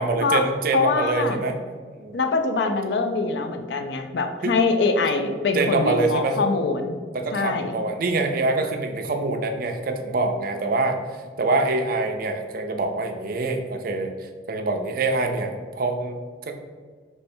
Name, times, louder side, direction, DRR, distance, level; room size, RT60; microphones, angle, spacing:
voice 1, 0.0-1.6 2.0-2.2 4.4-4.6 5.5-6.4 7.1-11.0 11.4-14.1 14.5-16.2 16.5-16.6, right 3 dB, 55° right, 5 dB, 0.5 m, -25 dB
voice 2, 0.7-1.4 2.1-7.0 7.3-7.8, left 4 dB, 75° left, 6 dB, 0.4 m, -23 dB
3.3 x 3.2 x 4.3 m, 1.5 s
head